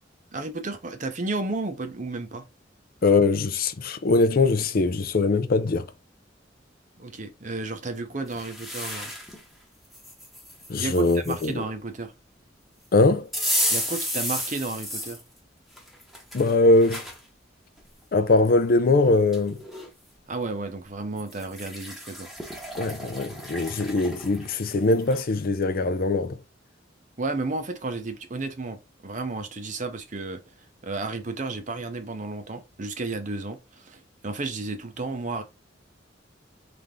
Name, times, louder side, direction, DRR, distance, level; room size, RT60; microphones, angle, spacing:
voice 1, 0.3-2.5 7.0-9.1 10.8-12.1 13.7-15.2 20.3-22.3 27.2-30.4 30.8-35.4, right 3 dB, 40° right, 0.7 m, -32 dB
voice 2, 3.0-5.9 10.7-11.6 12.9-13.3 16.3-17.0 18.1-19.6 22.8-26.4, left 3 dB, 50° left, 0.5 m, -21 dB
sound 1, 8.3-9.4 9.9-11.5 13.3-15.2 15.8-17.2 17.8-17.9 19.0-19.1 19.3-19.9 21.2-25.2, equal, ahead, 1.0 m, -33 dB
3.5 x 3.5 x 3.7 m
head